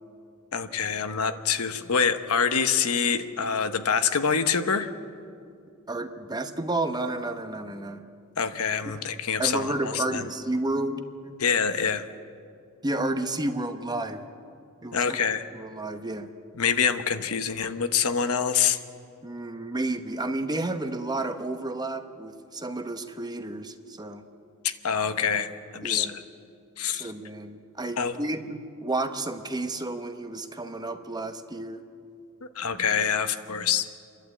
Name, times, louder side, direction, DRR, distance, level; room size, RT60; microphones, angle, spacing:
voice 1, 0.5-4.9 8.4-10.2 11.4-12.0 14.9-15.5 16.6-18.8 24.6-26.2 26.8-27.1 28.0-28.2 32.5-33.9, left 6 dB, 70° left, 9 dB, 1.0 m, -26 dB
voice 2, 5.9-8.0 9.4-11.3 12.8-14.2 14.8-15.2 15.5-16.3 19.2-24.2 25.8-26.1 26.9-31.8, right 2 dB, 20° right, 7 dB, 0.9 m, -31 dB
28.5 x 11.5 x 8.4 m, 2.4 s
head